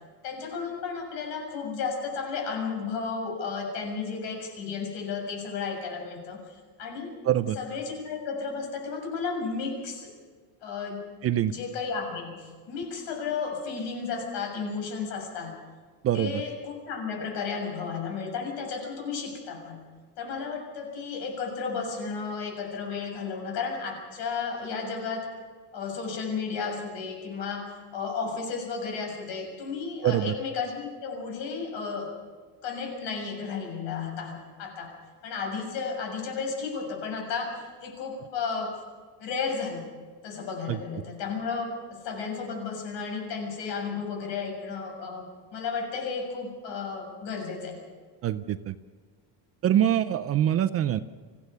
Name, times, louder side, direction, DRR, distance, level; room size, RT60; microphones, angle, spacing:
voice 1, 0.2-7.1 7.6-10.1 10.6-11.0 11.5-15.5 16.1-19.8 20.2-25.3 25.7-32.1 32.6-34.9 35.2-37.6 37.8-38.8 39.2-39.9 40.2-45.3 45.5-47.8, left 5 dB, 70° left, 2 dB, 6.9 m, -33 dB
voice 2, 7.2-7.6 11.2-11.5 16.0-16.4 30.0-30.3 40.7-40.8 48.2-48.7 49.6-51.0, right 11 dB, 35° right, 12 dB, 0.5 m, -24 dB
25.0 x 16.0 x 6.8 m, 1.5 s
cardioid pair, 175°, 45 cm